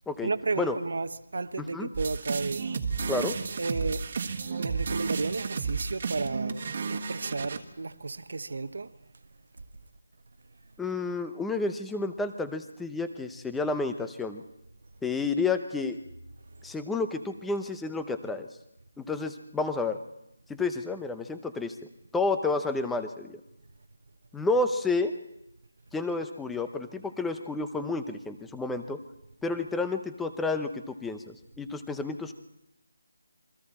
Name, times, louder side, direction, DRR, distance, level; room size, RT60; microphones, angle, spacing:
voice 1, 0.2-2.7 3.6-4.1 4.6-9.0 16.6-16.8, right 3 dB, 65° right, 1.1 m, -33 dB
voice 2, 1.6-1.9 3.1-3.3 10.8-14.4 15.0-16.0 16.6-18.5 19.0-20.0 20.5-21.8 22.1-23.4 24.3-25.1 25.9-29.0 29.4-32.3, left 3 dB, 5° left, 0.7 m, -30 dB
sound 1, 1.9-7.6, right 5 dB, 35° right, 1.5 m, -32 dB
27.5 x 23.0 x 4.3 m
figure-of-eight pair, 175°, 0 cm